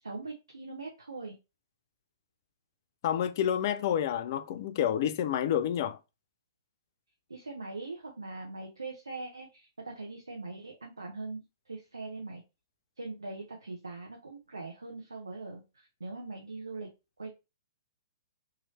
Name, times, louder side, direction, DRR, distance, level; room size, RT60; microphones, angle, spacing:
voice 1, 0.0-1.4 7.3-12.4 13.0-16.9 17.2-17.3, right 3 dB, 85° right, 0.8 m, -41 dB
voice 2, 3.0-6.0, left 10 dB, 50° left, 0.4 m, -29 dB
3.1 x 2.7 x 4.0 m
figure-of-eight pair, 115°, 2 cm